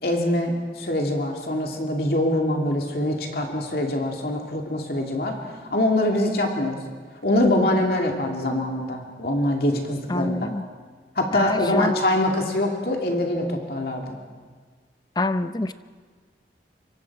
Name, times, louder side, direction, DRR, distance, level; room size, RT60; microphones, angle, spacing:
voice 1, 0.0-6.8 7.2-10.5 11.2-14.2, left 1 dB, 55° left, 1 dB, 2.6 m, -24 dB
voice 2, 10.1-10.7 11.3-12.0 15.2-15.7, left 2 dB, 25° left, 12 dB, 0.6 m, -25 dB
26.0 x 24.0 x 4.8 m, 1.5 s
head